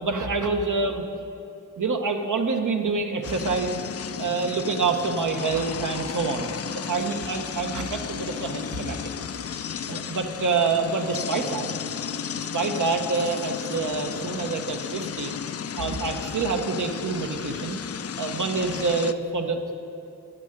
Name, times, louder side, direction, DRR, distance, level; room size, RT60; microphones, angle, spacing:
voice 1, 0.0-1.0 1.8-3.8 4.2-6.5 6.9-9.0 9.6-11.7 12.3-15.3 15.8-17.8 18.2-19.8, right 4 dB, 65° right, 5 dB, 1.0 m, -27 dB
sound 1, 3.2-19.1, left 8 dB, 45° left, 0.4 m, -34 dB
9.5 x 6.6 x 8.8 m, 2.8 s
cardioid pair, 65°, 33 cm